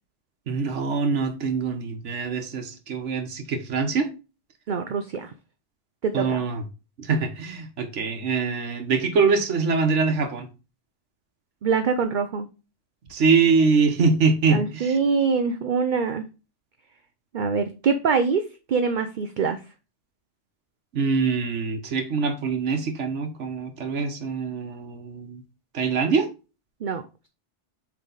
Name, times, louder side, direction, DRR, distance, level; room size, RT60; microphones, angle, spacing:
voice 1, 0.5-4.1 6.1-6.6 7.0-10.5 13.1-15.0 20.9-25.4 25.7-26.3, right 4 dB, 80° right, 1.4 m, -24 dB
voice 2, 4.7-5.3 6.0-6.4 11.6-12.5 14.5-16.3 17.3-19.6 26.8-27.0, right 5 dB, 50° right, 0.6 m, -24 dB
7.4 x 3.5 x 3.9 m
omnidirectional pair, 1.2 m